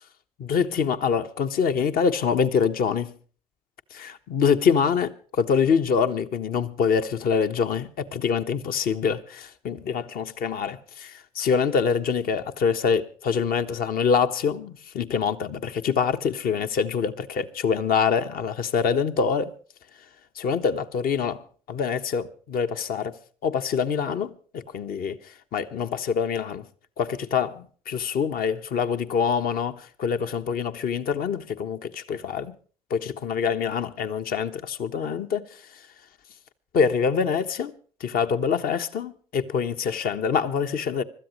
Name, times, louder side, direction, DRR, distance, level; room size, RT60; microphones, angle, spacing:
voice 1, 0.4-3.1 3.9-19.5 20.3-21.4 21.7-23.1 23.4-26.7 27.0-32.5 32.9-35.8 36.7-37.7 38.0-41.0, left 6 dB, 60° left, 1.3 m, -25 dB
25.0 x 13.5 x 3.1 m
hypercardioid pair, 60°, 16 cm